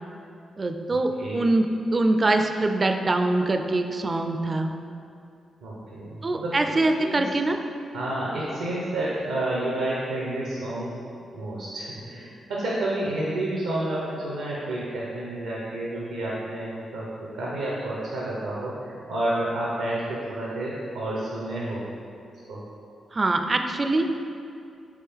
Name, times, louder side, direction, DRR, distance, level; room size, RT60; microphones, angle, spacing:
voice 1, 0.6-1.7 1.9-4.7 6.2-7.6 23.1-24.0, right 2 dB, 40° right, 5 dB, 0.3 m, -23 dB
voice 2, 5.6-7.2 7.9-11.0 11.3-21.9 22.5-22.6, right 1 dB, 85° right, -6 dB, 0.6 m, -30 dB
3.9 x 3.5 x 3.5 m, 2.5 s
hypercardioid pair, 45°, 0 cm